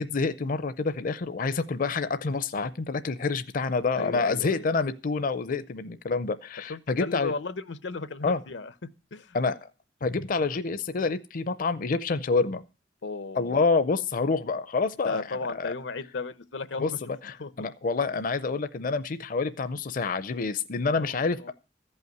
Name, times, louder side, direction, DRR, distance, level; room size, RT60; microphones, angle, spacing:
voice 1, 0.0-7.3 8.2-8.4 9.3-9.7 10.0-12.6 13.4-15.7 16.8-21.5, left 4 dB, 50° left, 0.5 m, -28 dB
voice 2, 3.9-4.7 6.7-9.4 13.0-13.6 15.0-17.0 17.4-17.5 21.0-21.1 21.4-21.5, left 3 dB, 85° left, 0.8 m, -35 dB
14.5 x 5.6 x 9.2 m
head